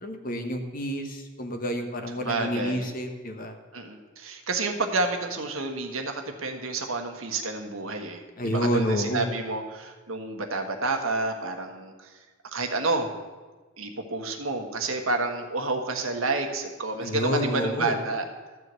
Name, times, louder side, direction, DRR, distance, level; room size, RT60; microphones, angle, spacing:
voice 1, 0.0-3.5 8.4-9.3 17.0-18.0, equal, 45° left, 5 dB, 1.2 m, -29 dB
voice 2, 2.2-2.9 3.7-12.1 12.5-13.1 13.8-18.2, right 3 dB, 90° right, 5 dB, 1.4 m, -29 dB
13.5 x 4.7 x 8.1 m, 1.3 s
head